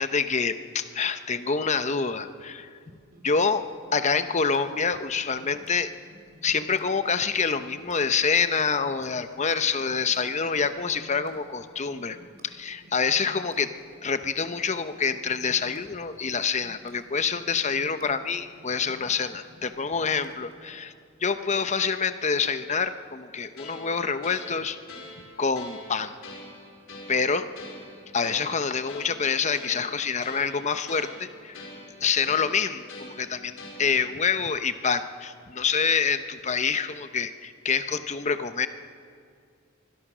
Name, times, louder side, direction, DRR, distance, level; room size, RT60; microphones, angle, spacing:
voice 1, 0.0-2.7 3.2-3.6 3.9-5.9 6.4-12.2 12.4-13.7 14.0-20.9 21.2-24.8 25.4-26.1 27.1-27.5 28.1-31.6 32.0-38.7, left 5 dB, 35° left, 10 dB, 0.9 m, -26 dB
sound 1, 2.8-20.7, equal, 45° right, 3.9 m, -52 dB
sound 2, 23.6-34.2, left 2 dB, 75° left, 4.9 m, -45 dB
24.5 x 21.5 x 6.2 m, 2.2 s
head